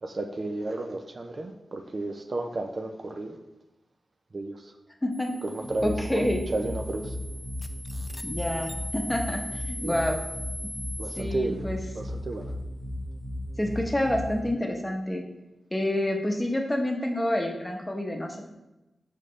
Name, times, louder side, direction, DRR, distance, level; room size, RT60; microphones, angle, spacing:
voice 1, 0.0-3.4 4.3-4.7 5.4-7.2 9.8-9.9 11.0-11.7 11.9-12.5, right 2 dB, 45° right, 5 dB, 0.5 m, -33 dB
sound 1, 5.1-11.2, left 1 dB, 35° left, 0.5 m, -40 dB
sound 2, 5.6-14.4, left 1 dB, 20° right, 1.0 m, -36 dB
voice 2, 5.8-6.4 8.2-10.2 11.2-11.8 13.6-15.2 15.7-18.5, left 1 dB, 10° left, 2 dB, 1.0 m, -28 dB
6.5 x 5.1 x 3.2 m, 0.97 s
wide cardioid pair, 85°, 0 cm